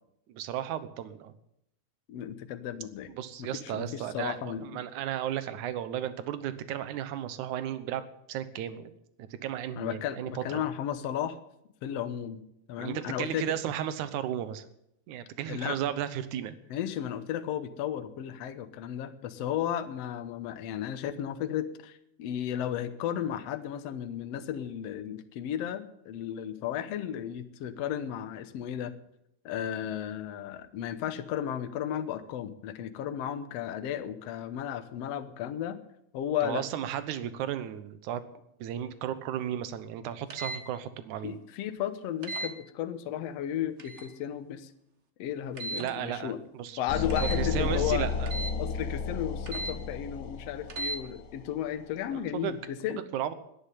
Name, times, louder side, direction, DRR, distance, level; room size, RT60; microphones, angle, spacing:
voice 1, 0.3-1.3 3.2-8.9 9.2-10.6 12.8-14.6 15.1-16.6 36.4-38.2 38.6-41.4 45.7-48.3 52.1-52.5 52.9-53.3, right 10 dB, 75° right, 13 dB, 2.4 m, -34 dB
voice 2, 2.1-3.1 3.4-4.8 9.8-11.4 11.8-12.4 12.7-13.5 15.5-15.8 16.7-28.9 29.5-35.8 36.1-36.6 41.2-44.7 45.2-46.4 46.8-48.1 48.6-53.0, left 10 dB, 65° left, 10 dB, 1.9 m, -34 dB
sound 1, 40.3-40.6 42.2-42.5 43.8-44.1 45.6-45.9 47.1-47.4 48.3-48.5 49.5-49.7 50.7-51.0, right 2 dB, 60° right, 0.7 m, -36 dB
sound 2, 46.9-51.7, left 4 dB, 90° left, 3.0 m, -32 dB
11.0 x 10.5 x 9.9 m, 0.79 s
omnidirectional pair, 3.6 m